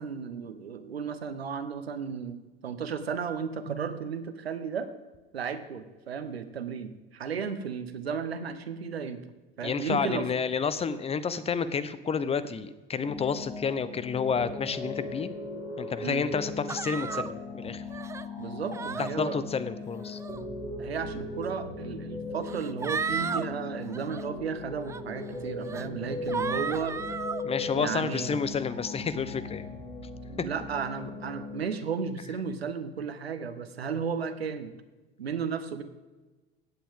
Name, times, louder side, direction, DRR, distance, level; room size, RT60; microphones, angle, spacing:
voice 1, 0.0-4.9 5.3-9.2 9.6-10.3 16.0-16.2 18.4-19.5 20.8-27.0 27.8-28.4 30.4-34.7 35.2-35.8, right 6 dB, 85° right, 11 dB, 0.9 m, -34 dB
voice 2, 9.6-15.3 15.8-17.8 19.0-20.2 27.4-29.7, left 6 dB, 20° left, 14 dB, 0.8 m, -30 dB
sound 1, 13.0-31.6, left 3 dB, 90° left, 3.3 m, -38 dB
sound 2, 16.7-17.3 17.9-18.3 18.7-19.1 20.0-20.4 21.4-21.5 22.4-23.5 23.9-24.2 24.9-25.0 25.6-25.8 26.3-27.4, right 5 dB, 10° right, 0.3 m, -34 dB
15.5 x 8.7 x 3.6 m, 1.2 s
figure-of-eight pair, 75°, 30 cm